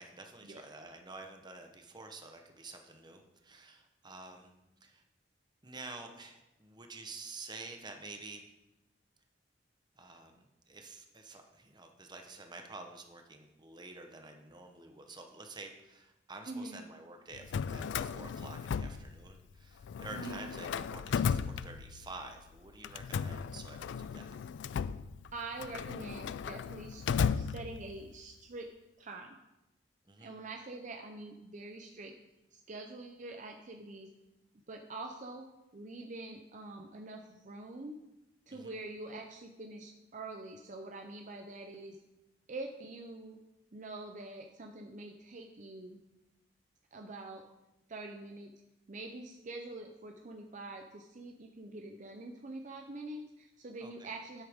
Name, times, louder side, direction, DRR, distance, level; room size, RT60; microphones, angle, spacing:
voice 1, 0.0-4.5 4.8-5.0 5.6-8.5 10.0-24.3 30.1-30.4 38.5-38.8 53.8-54.1, right 3 dB, 25° right, 4 dB, 1.0 m, -49 dB
voice 2, 16.5-16.8 20.1-20.5 25.3-28.7 29.0-29.4 30.2-32.1 32.5-34.1 34.7-35.5 35.7-38.0 38.5-42.0 42.5-43.4 43.7-46.0 46.9-47.4 47.9-48.5 48.9-54.4, right 2 dB, 45° right, 3 dB, 0.7 m, -45 dB
Drawer open or close, 17.3-19.5 19.8-22.2 22.8-28.1, left 6 dB, 75° left, 0.3 m, -35 dB
9.7 x 8.0 x 3.6 m, 0.95 s
head